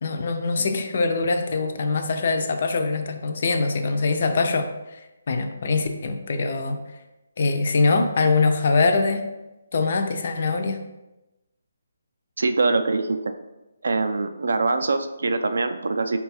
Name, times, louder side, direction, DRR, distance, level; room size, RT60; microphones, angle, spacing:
voice 1, 0.0-5.0 5.3-6.8 7.4-9.2 9.7-10.8, left 3 dB, 40° left, 6 dB, 0.3 m, -23 dB
voice 2, 12.4-13.3 13.8-16.2, right 3 dB, 65° right, 8 dB, 0.3 m, -23 dB
3.9 x 2.3 x 4.1 m, 1.0 s
hypercardioid pair, 175°, 0 cm